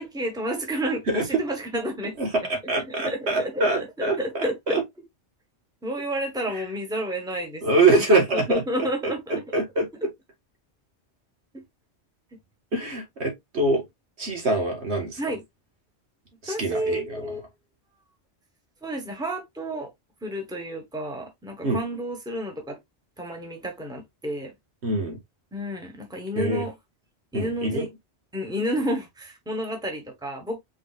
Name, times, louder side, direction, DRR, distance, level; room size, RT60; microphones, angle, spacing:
voice 1, 0.0-2.5 2.9-4.8 5.8-7.8 8.3-9.2 11.5-11.6 15.2-15.4 16.5-17.4 18.8-19.9 20.2-22.8 23.2-24.5 25.5-26.7 27.3-27.9 28.3-30.6, equal, 5° right, 1.3 m, -31 dB
voice 2, 2.2-4.2 7.6-8.6 9.0-9.9 12.7-13.8 14.2-15.2 16.4-17.3 21.6-21.8 24.8-25.2 26.4-26.7 27.3-27.9, right 2 dB, 65° right, 1.9 m, -24 dB
5.0 x 3.8 x 2.4 m
omnidirectional pair, 1.2 m